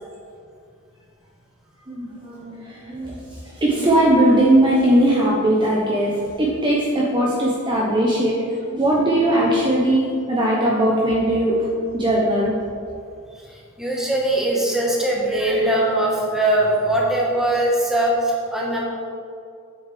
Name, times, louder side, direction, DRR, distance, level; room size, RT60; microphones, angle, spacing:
voice 1, 1.9-12.6, right 1 dB, 20° right, -5 dB, 0.9 m, -19 dB
voice 2, 13.3-18.8, right 1 dB, ahead, -4 dB, 1.4 m, -21 dB
8.2 x 7.1 x 3.4 m, 2.4 s
head